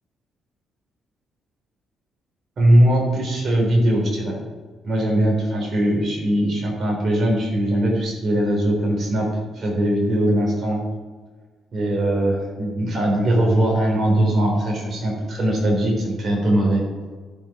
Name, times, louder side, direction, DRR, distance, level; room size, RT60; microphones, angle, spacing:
voice 1, 2.6-4.4 4.8-9.3 9.5-10.8 11.7-16.8, right 1 dB, 50° right, -1 dB, 3.5 m, -20 dB
14.0 x 5.9 x 5.0 m, 1.5 s
cardioid pair, 90°, 0 cm